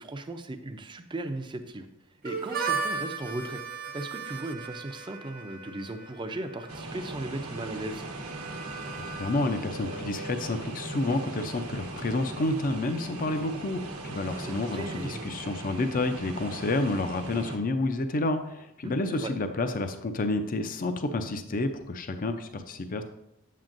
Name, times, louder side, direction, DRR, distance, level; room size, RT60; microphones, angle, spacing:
voice 1, 0.0-1.9 2.2-3.6 3.9-8.0 14.4-15.4 18.8-19.3, right 2 dB, 20° right, 7 dB, 0.5 m, -37 dB
Harmonica, 2.2-11.9, right 5 dB, 40° right, 0.9 m, -38 dB
sound 1, 6.7-17.6, right 2 dB, 75° right, 1.0 m, -39 dB
voice 2, 9.0-23.0, left 2 dB, 40° left, 8 dB, 0.5 m, -29 dB
8.0 x 7.4 x 2.6 m, 0.85 s
head